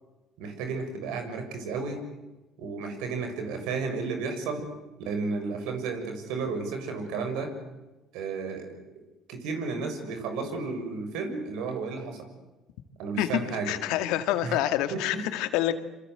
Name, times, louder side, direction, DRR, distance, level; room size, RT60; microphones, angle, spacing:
voice 1, 0.4-2.0 2.6-4.6 5.0-7.5 8.1-8.7 9.3-12.3 13.0-13.7 14.4-14.6 14.9-15.3, right 4 dB, 80° right, 6 dB, 6.8 m, -32 dB
voice 2, 13.7-15.7, left 14 dB, 80° left, 9 dB, 2.2 m, -27 dB
27.0 x 25.5 x 8.0 m, 1.1 s
supercardioid pair, 75°, 0 cm